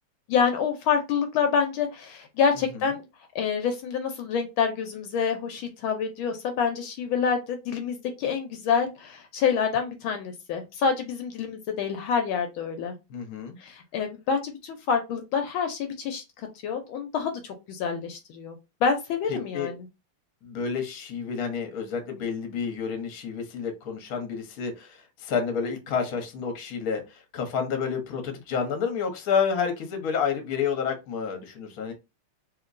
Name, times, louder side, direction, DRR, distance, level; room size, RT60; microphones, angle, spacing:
voice 1, 0.3-3.1 3.3-12.9 13.6-19.9, left 6 dB, 80° left, 1.4 m, -27 dB
voice 2, 13.1-13.6 19.5-19.7 20.4-31.9, left 6 dB, 55° left, 1.1 m, -29 dB
3.2 x 2.8 x 2.5 m
omnidirectional pair, 2.3 m